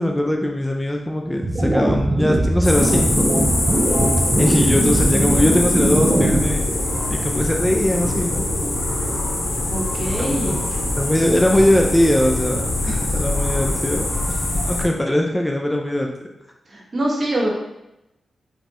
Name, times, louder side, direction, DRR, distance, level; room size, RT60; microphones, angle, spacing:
voice 1, 0.0-3.3 4.4-6.6 7.1-8.4 10.2-10.6 11.0-12.7 13.1-14.1 14.6-16.1, left 1 dB, 10° left, 1 dB, 0.6 m, -20 dB
sound 1, 1.4-6.4, right 1 dB, 25° right, 0.8 m, -20 dB
sound 2, 2.6-14.8, left 2 dB, 50° left, 1.6 m, -23 dB
voice 2, 9.7-10.7 12.8-13.2 16.7-17.5, right 1 dB, 50° right, -3 dB, 1.5 m, -25 dB
5.1 x 3.2 x 3.1 m, 0.90 s
cardioid pair, 55°, 0 cm